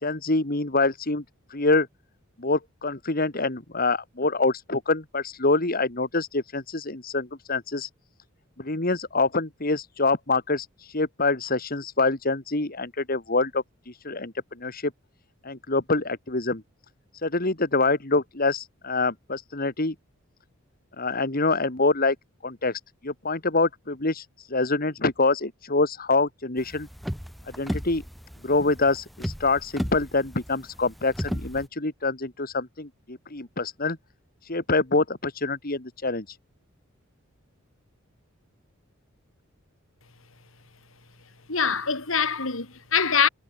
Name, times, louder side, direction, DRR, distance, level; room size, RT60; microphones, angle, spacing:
voice 1, 0.0-1.2 1.5-1.9 2.4-7.9 8.6-14.9 15.4-16.6 17.2-19.9 21.0-22.2 22.4-26.9 27.4-28.0 28.4-34.0 34.4-36.4, left 3 dB, 45° left, 2.5 m, -26 dB
sound 1, 26.6-31.7, equal, ahead, 2.1 m, -34 dB
voice 2, 41.5-43.3, left 6 dB, 80° left, 4.0 m, -24 dB
head